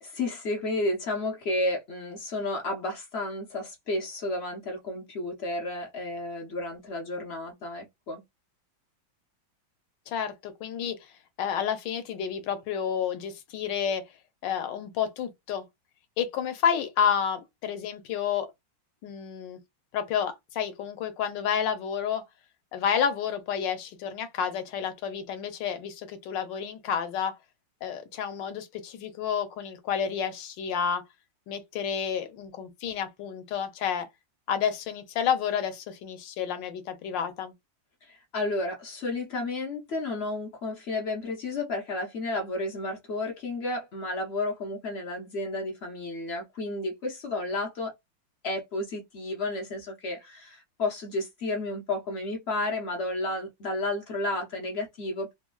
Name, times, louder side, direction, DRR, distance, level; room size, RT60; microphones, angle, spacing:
voice 1, 0.0-8.2 38.0-47.9 48.4-55.3, left 2 dB, 55° left, 0.7 m, -32 dB
voice 2, 10.1-11.1 11.4-14.0 14.4-15.6 16.2-18.5 19.0-19.6 19.9-22.2 22.7-27.3 27.8-31.0 31.5-34.1 34.5-37.5, left 8 dB, 75° left, 1.3 m, -30 dB
3.2 x 2.3 x 2.2 m
omnidirectional pair, 2.1 m